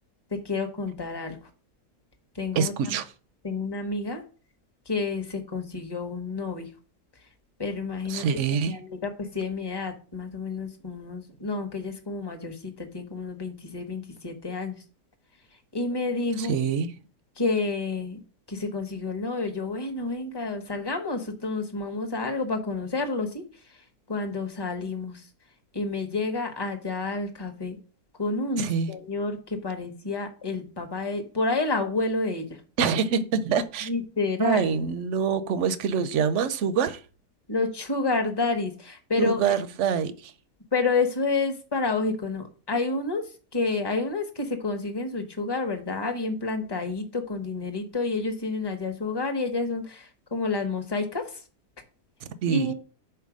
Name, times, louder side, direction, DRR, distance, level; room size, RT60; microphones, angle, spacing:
voice 1, 0.3-1.4 2.3-3.0 3.4-4.2 4.9-6.7 7.6-8.2 8.6-14.8 15.7-16.6 17.4-18.2 18.5-23.4 24.1-25.2 25.7-27.8 28.2-32.5 33.8-34.7 37.5-39.6 40.7-51.4 52.5-52.7, left 3 dB, 20° left, 0.8 m, -29 dB
voice 2, 2.5-3.1 8.1-8.8 16.4-16.9 28.6-29.0 32.8-33.9 34.4-37.0 39.2-40.3 52.4-52.7, right 6 dB, 60° right, 0.8 m, -25 dB
5.8 x 4.5 x 6.1 m
omnidirectional pair, 1.7 m